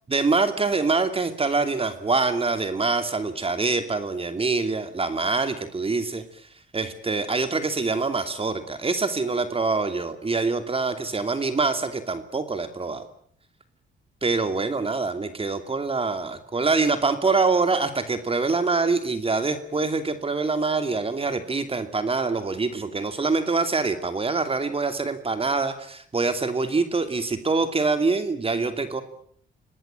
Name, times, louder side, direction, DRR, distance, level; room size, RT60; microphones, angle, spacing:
voice 1, 0.1-6.2 6.7-13.1 14.2-29.0, right 3 dB, 30° right, 9 dB, 2.7 m, -25 dB
27.0 x 19.0 x 9.0 m, 0.62 s
cardioid pair, 90°, 20 cm